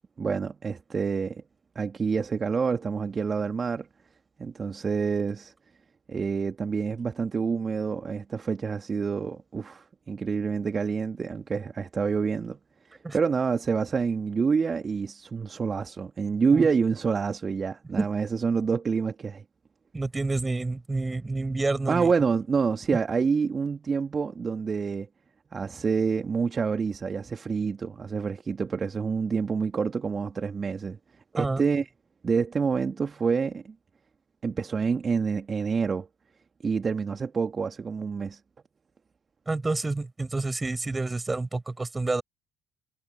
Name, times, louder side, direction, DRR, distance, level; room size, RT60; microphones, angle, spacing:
voice 1, 0.2-1.4 1.8-3.9 4.4-5.5 6.1-12.6 13.1-19.4 21.9-25.1 25.5-31.0 31.3-31.9 32.2-33.7 34.4-36.1 36.6-38.4, right 5 dB, 35° right, 2.1 m, -27 dB
voice 2, 19.9-22.1 31.4-31.6 39.5-42.2, right 3 dB, 20° right, 7.0 m, -29 dB
hypercardioid pair, 50°, 0 cm